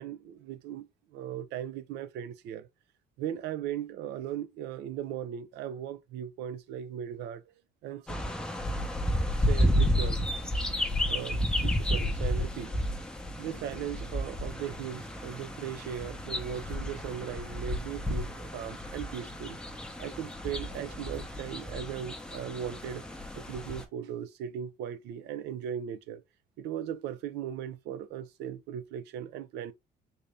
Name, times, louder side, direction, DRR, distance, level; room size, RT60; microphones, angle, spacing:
voice 1, 0.0-2.7 3.2-7.5 7.8-8.2 8.5-8.6 9.4-10.6 11.1-12.9 13.4-19.6 20.0-23.0 23.3-26.2 26.6-29.7, right 9 dB, 85° right, 0.5 m, -38 dB
sound 1, 8.1-23.8, equal, 5° left, 0.7 m, -32 dB
4.0 x 2.7 x 3.3 m
cardioid pair, 110°, 17 cm